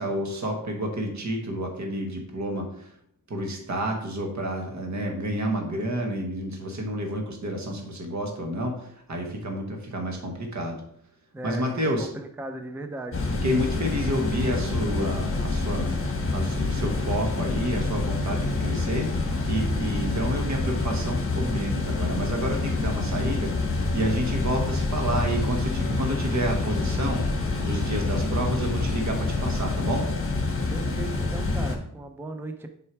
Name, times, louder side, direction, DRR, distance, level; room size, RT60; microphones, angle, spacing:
voice 1, 0.0-2.9 3.3-10.8 11.4-12.1 13.4-15.9 16.3-27.2 27.6-30.1, right 1 dB, 55° right, 2 dB, 1.4 m, -29 dB
voice 2, 11.3-13.3 30.7-32.7, right 2 dB, 5° right, 6 dB, 0.5 m, -37 dB
sound 1, 13.1-31.8, left 3 dB, 40° left, 1.3 m, -27 dB
sound 2, 24.4-29.4, right 1 dB, 10° left, 3.1 m, -46 dB
6.5 x 4.5 x 4.5 m, 0.69 s
wide cardioid pair, 145°, 34 cm